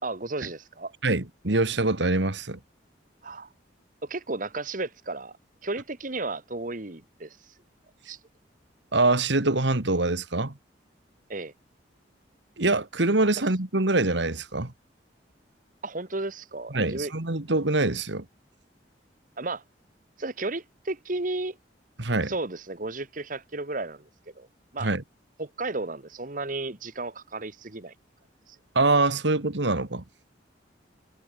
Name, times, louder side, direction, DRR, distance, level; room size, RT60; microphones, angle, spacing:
voice 1, 0.0-0.9 3.2-3.5 4.0-5.3 5.6-7.4 8.1-8.2 11.3-11.5 15.8-17.1 19.4-19.6 20.2-21.6 22.3-24.5 24.7-24.9 25.4-27.9 28.5-28.6, right 2 dB, 45° right, 1.6 m, -33 dB
voice 2, 1.0-2.6 8.9-10.5 12.6-14.7 16.7-18.3 22.0-22.3 24.8-25.0 28.8-30.0, right 2 dB, 75° right, 2.0 m, -24 dB
head